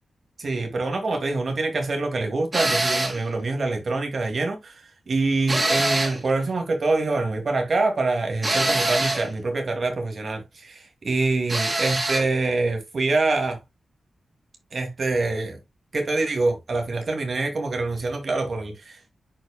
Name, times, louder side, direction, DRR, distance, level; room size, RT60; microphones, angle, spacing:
voice 1, 0.4-4.7 5.1-13.6 14.7-15.6 15.9-19.0, right 3 dB, 55° right, 2.5 m, -25 dB
sound 1, 2.5-3.2 5.5-6.3 8.4-9.3 11.5-12.3, right 2 dB, 35° right, 3.2 m, -24 dB
10.0 x 4.7 x 2.3 m
cardioid pair, 65°, 0 cm